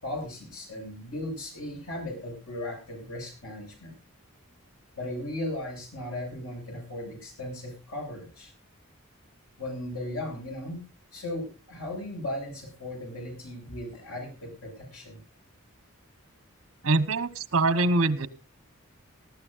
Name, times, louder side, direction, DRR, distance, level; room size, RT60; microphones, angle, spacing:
voice 1, 0.0-3.9 5.0-8.5 9.6-10.8 11.1-15.2, left 1 dB, 85° left, 2 dB, 7.8 m, -37 dB
voice 2, 16.8-18.3, right 2 dB, 70° right, 15 dB, 1.1 m, -24 dB
18.5 x 14.5 x 2.6 m, 0.31 s
head